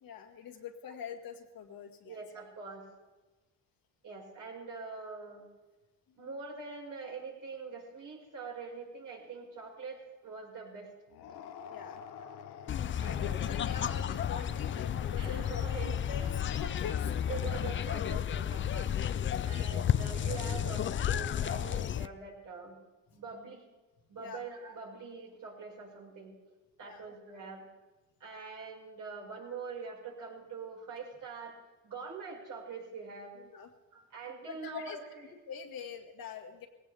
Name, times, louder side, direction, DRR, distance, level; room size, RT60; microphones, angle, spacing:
voice 1, 0.0-2.2 11.7-12.0 13.1-17.3 19.5-19.8 24.1-24.4 26.8-27.0 33.4-33.7 34.4-35.0 35.2-36.7, left 7 dB, 65° left, 4 dB, 2.0 m, -44 dB
voice 2, 2.1-2.9 4.0-5.5 6.2-10.9 13.0-13.3 15.2-16.0 17.3-18.9 19.4-22.8 23.1-23.7 24.1-26.3 26.8-27.7 28.2-31.6 31.8-33.4 33.9-35.2, right 4 dB, 55° right, -2 dB, 5.4 m, -44 dB
sound 1, 11.1-18.3, left 8 dB, 85° left, 1.2 m, -49 dB
sound 2, 12.7-22.1, left 9 dB, 35° left, 0.4 m, -32 dB
20.0 x 17.0 x 3.5 m, 1.2 s
cardioid pair, 110°, 37 cm